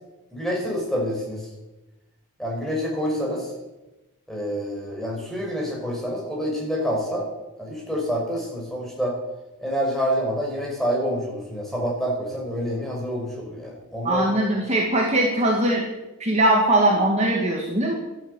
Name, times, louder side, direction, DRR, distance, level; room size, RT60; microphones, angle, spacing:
voice 1, 0.3-1.4 2.4-3.5 4.3-7.3 7.6-9.1 9.6-14.2, equal, ahead, -3 dB, 5.3 m, -27 dB
voice 2, 14.0-15.8 16.2-17.9, right 1 dB, 30° right, -1 dB, 2.2 m, -20 dB
13.0 x 12.0 x 8.5 m, 1.0 s
head